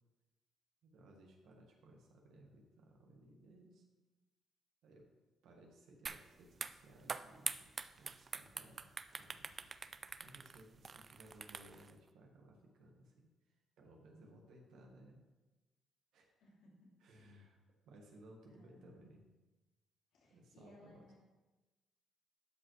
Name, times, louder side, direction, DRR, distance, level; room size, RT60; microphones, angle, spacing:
voice 1, 0.8-3.8 4.8-5.1 5.4-8.9 9.2-9.7 10.2-15.2 16.1-16.3 17.0-17.6 17.8-19.3 20.3-21.2, right 1 dB, 80° right, 1 dB, 1.5 m, -61 dB
sound 1, 6.1-6.2 6.5-11.9, right 5 dB, 40° right, 0.4 m, -44 dB
voice 2, 16.4-16.9 18.5-19.0 20.1-21.2, left 1 dB, 90° left, -4 dB, 2.7 m, -63 dB
12.0 x 5.3 x 3.2 m, 1.2 s
cardioid pair, 90°, 0 cm